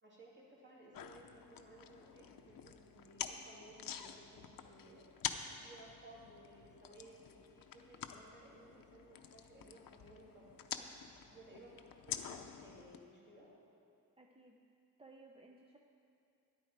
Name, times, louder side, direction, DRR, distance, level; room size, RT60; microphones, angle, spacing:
voice 1, 0.0-5.2 5.5-10.6 11.2-13.5, right 1 dB, 30° right, -5 dB, 2.5 m, -59 dB
sound 1, 0.9-13.0, left 8 dB, 70° left, 0.6 m, -48 dB
voice 2, 14.2-14.6 15.0-15.8, right 2 dB, 15° right, 1 dB, 0.4 m, -59 dB
13.0 x 10.5 x 4.7 m, 2.6 s
wide cardioid pair, 170°, 35 cm